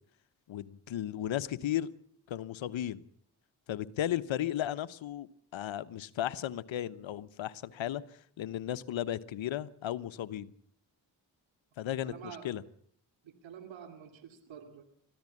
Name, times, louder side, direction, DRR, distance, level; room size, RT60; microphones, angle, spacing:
voice 1, 0.5-1.9 2.3-3.0 3.7-8.0 8.4-10.5 11.8-12.6, left 12 dB, 80° left, 14 dB, 1.1 m, -35 dB
voice 2, 12.0-12.5 13.2-14.8, right 8 dB, 85° right, 7 dB, 2.7 m, -48 dB
21.0 x 14.5 x 9.9 m, 0.64 s
supercardioid pair, 45°, 45 cm